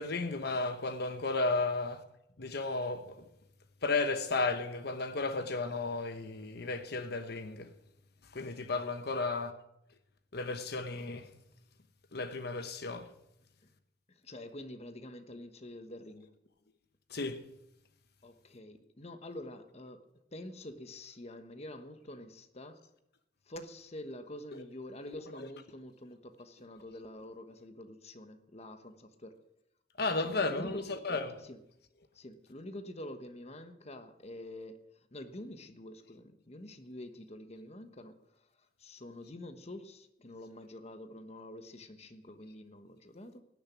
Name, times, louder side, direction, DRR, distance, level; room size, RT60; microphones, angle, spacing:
voice 1, 0.0-2.0 2.4-3.2 3.8-7.7 8.3-9.5 10.3-11.3 12.1-13.1 17.1-17.4 30.0-31.4, left 3 dB, 60° left, 1.1 m, -33 dB
voice 2, 14.1-16.3 18.2-22.9 23.4-29.4 30.0-30.9 31.4-31.6 32.1-43.4, left 1 dB, 35° left, 1.2 m, -47 dB
18.5 x 6.9 x 10.0 m
head